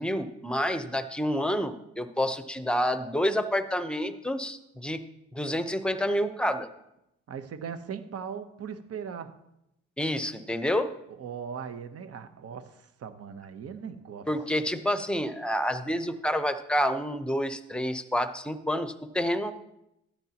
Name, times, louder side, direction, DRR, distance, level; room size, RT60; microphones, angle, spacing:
voice 1, 0.0-5.0 5.3-6.7 10.0-10.9 14.3-19.5, equal, 5° left, 9 dB, 0.8 m, -28 dB
voice 2, 7.3-9.3 11.2-14.3, right 7 dB, 50° right, 10 dB, 1.0 m, -39 dB
13.5 x 10.0 x 2.9 m, 0.82 s
cardioid pair, 90°, 30 cm